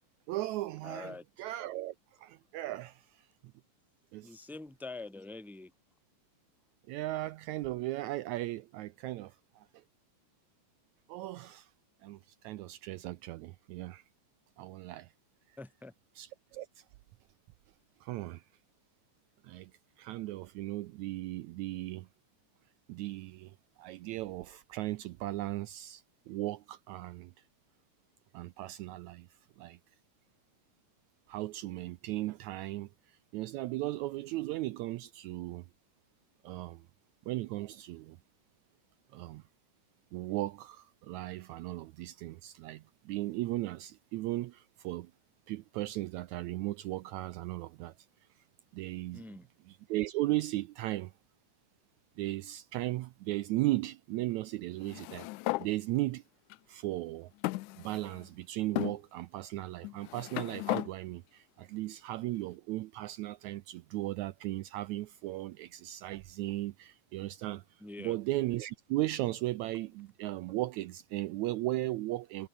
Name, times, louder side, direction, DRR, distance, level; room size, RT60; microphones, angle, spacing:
voice 1, 0.3-3.3 4.1-4.5 6.9-9.8 11.1-11.7 12.0-14.0 14.6-15.1 16.2-16.8 18.0-18.4 19.4-19.7 20.0-22.1 22.9-27.3 28.3-29.3 29.6-29.8 31.3-35.6 36.4-36.8 37.3-38.2 39.1-39.4 40.1-45.1 45.5-47.9 48.7-49.2 49.7-51.1 52.2-55.3 55.6-56.2 56.7-57.3 57.8-72.5, right 17 dB, 85° right, 1.7 m, -37 dB
voice 2, 0.8-1.2 4.2-5.7 15.6-15.9 49.1-49.5 67.8-68.2, left 3 dB, ahead, 1.8 m, -45 dB
sound 1, 54.8-55.7 56.5-56.6 57.4-58.3 58.8-59.0 59.8-60.9, left 21 dB, 80° left, 1.8 m, -35 dB
omnidirectional pair, 3.8 m